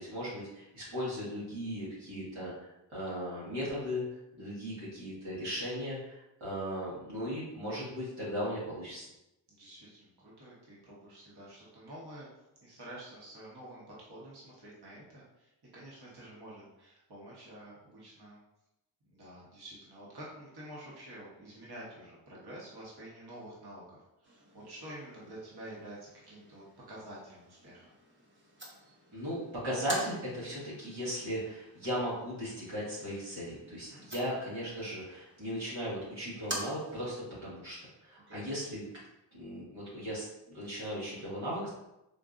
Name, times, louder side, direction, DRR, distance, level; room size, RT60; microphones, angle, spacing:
voice 1, 0.0-4.0 4.4-9.1 29.1-37.1 37.4-37.8 38.0-38.8 39.3-41.7, equal, 90° right, -8 dB, 1.4 m, -37 dB
voice 2, 9.5-12.3 12.6-18.4 19.0-27.9 33.8-34.0 38.3-38.5, right 1 dB, 55° right, -6 dB, 1.1 m, -49 dB
sound 1, 24.2-37.2, right 1 dB, 25° right, 0.8 m, -47 dB
3.8 x 2.5 x 2.4 m, 0.91 s
cardioid pair, 45°, 46 cm